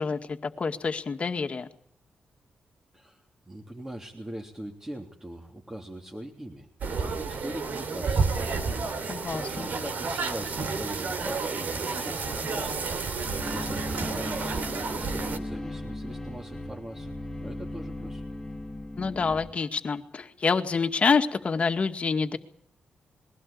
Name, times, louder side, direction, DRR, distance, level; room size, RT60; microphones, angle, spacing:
voice 1, 0.0-1.7 9.1-9.7 18.9-22.4, left 5 dB, 40° left, 7 dB, 2.1 m, -27 dB
voice 2, 2.9-8.8 9.2-12.8 13.4-17.1 17.4-18.2, right 1 dB, 15° right, 1 dB, 3.2 m, -41 dB
sound 1, 6.8-15.4, right 4 dB, 65° right, 3.3 m, -30 dB
sound 2, 13.2-19.5, left 1 dB, 10° left, 2.4 m, -37 dB
22.0 x 17.0 x 8.7 m, 0.66 s
cardioid pair, 100°, 3 cm